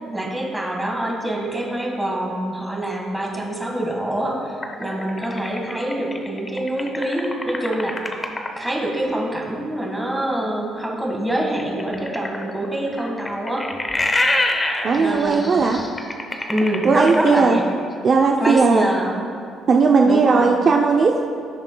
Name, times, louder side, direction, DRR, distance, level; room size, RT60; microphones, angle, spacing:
voice 1, 0.1-8.2 8.6-13.7 15.0-15.5 16.5-17.6 18.4-19.1 20.0-20.5, right 1 dB, 5° right, -1 dB, 1.7 m, -25 dB
sound 1, 4.6-8.7 11.6-17.6, left 2 dB, 20° left, 0.9 m, -26 dB
voice 2, 14.8-15.8 16.8-17.6 18.0-18.9 19.7-21.2, right 4 dB, 40° right, 1 dB, 0.6 m, -17 dB
16.5 x 7.1 x 2.3 m, 2.3 s
cardioid pair, 115°, 0 cm